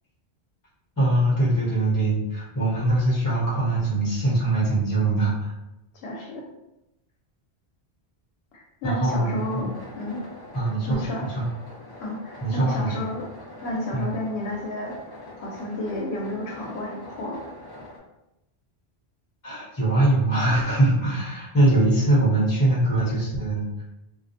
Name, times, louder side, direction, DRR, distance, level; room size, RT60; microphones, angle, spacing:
voice 1, 1.0-5.5 8.8-9.7 10.5-11.5 12.4-12.9 13.9-14.1 19.4-23.8, right 2 dB, 20° left, -8 dB, 0.9 m, -22 dB
voice 2, 5.9-6.4 8.5-9.7 10.0-10.2 10.9-11.3 12.0-13.2 13.6-17.4, left 1 dB, 80° left, -1 dB, 0.8 m, -31 dB
sound 1, 9.2-18.0, left 1 dB, 35° left, 0.4 m, -43 dB
2.4 x 2.0 x 2.7 m, 0.91 s
omnidirectional pair, 1.1 m